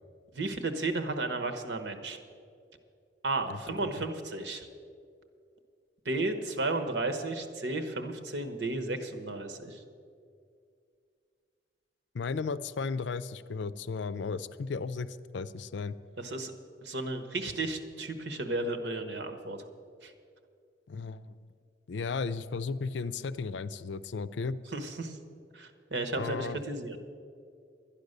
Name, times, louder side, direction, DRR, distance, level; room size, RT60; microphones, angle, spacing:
voice 1, 0.3-2.2 3.2-4.7 6.0-9.8 16.2-16.5 16.8-19.6 20.0-20.1 24.7-25.2 25.5-27.0, right 2 dB, 80° right, 6 dB, 1.2 m, -33 dB
voice 2, 12.1-16.0 20.9-21.4 21.9-24.6 26.1-26.6, left 4 dB, 85° left, 15 dB, 0.5 m, -35 dB
11.5 x 10.5 x 6.6 m, 2.3 s
head